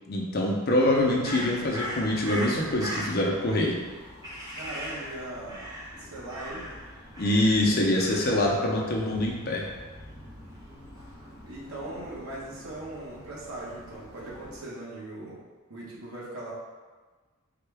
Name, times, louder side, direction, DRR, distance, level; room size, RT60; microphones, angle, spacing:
voice 1, 0.1-3.8 7.2-9.6, left 1 dB, 45° left, -1 dB, 0.6 m, -25 dB
Crow, 0.9-14.6, equal, 15° right, 0.9 m, -41 dB
voice 2, 4.5-5.7 6.0-6.7 11.4-15.4 15.7-16.5, right 1 dB, 90° right, -5 dB, 1.0 m, -39 dB
3.6 x 2.2 x 3.3 m, 1.4 s
head